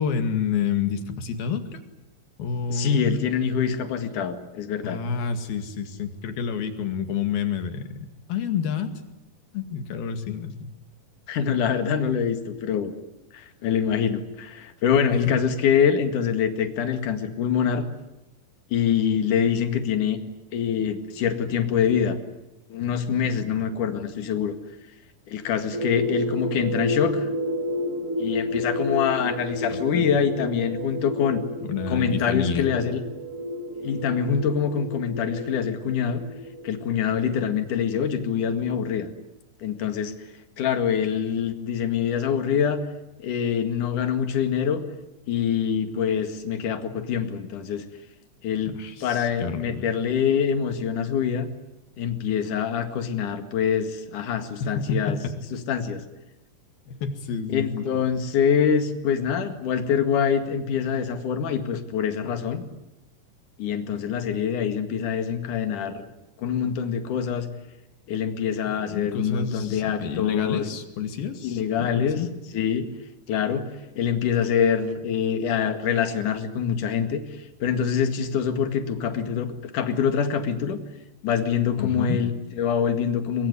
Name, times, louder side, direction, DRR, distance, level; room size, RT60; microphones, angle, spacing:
voice 1, 0.0-1.8 2.4-3.1 4.8-8.9 9.5-10.5 15.1-15.2 29.7-30.1 31.6-32.7 48.7-49.9 54.6-55.2 56.9-57.9 68.6-72.3 81.8-82.2, left 6 dB, 85° left, 8 dB, 4.0 m, -29 dB
voice 2, 2.7-5.0 11.3-12.9 13.3-17.8 18.7-20.2 20.5-22.2 22.7-24.5 25.3-27.3 28.2-31.4 31.9-33.0 33.8-36.2 36.6-39.1 39.6-40.1 40.6-42.8 43.2-44.8 45.3-47.8 48.4-48.8 49.0-51.5 52.0-55.2 55.7-56.0 57.5-62.7 63.6-66.1 66.4-67.5 68.1-70.7 71.4-72.2 72.5-72.9 73.3-73.7 74.0-80.8 81.2-83.5, left 7 dB, 60° left, 8 dB, 3.3 m, -25 dB
sound 1, 25.7-37.4, equal, 75° right, 0.7 m, -31 dB
23.5 x 22.5 x 9.7 m, 0.97 s
omnidirectional pair, 4.2 m